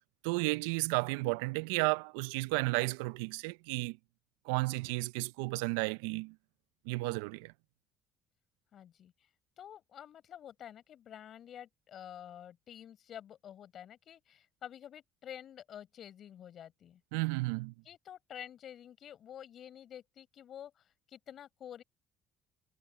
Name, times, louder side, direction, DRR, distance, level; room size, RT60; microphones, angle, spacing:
voice 1, 0.2-4.0 4.4-6.4 6.9-7.5 17.1-17.7, right 24 dB, 85° right, 0.5 m, -33 dB
voice 2, 8.7-9.1 9.6-17.0 17.8-21.8, left 10 dB, 55° left, 4.6 m, -49 dB
supercardioid pair, 75°, 0 cm